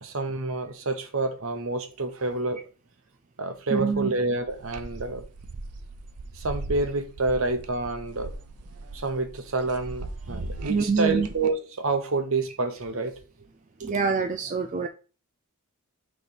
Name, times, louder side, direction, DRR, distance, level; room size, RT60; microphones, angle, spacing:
voice 1, 0.0-2.6 3.4-5.2 6.3-8.3 8.9-13.2 13.8-13.9, right 3 dB, 65° right, 1.1 m, -28 dB
voice 2, 3.7-4.1 10.3-10.4 10.7-11.3 13.8-14.9, right 5 dB, 35° right, 0.4 m, -25 dB
sound 1, 4.5-11.5, right 2 dB, 90° right, 0.7 m, -39 dB
6.4 x 3.3 x 5.6 m
head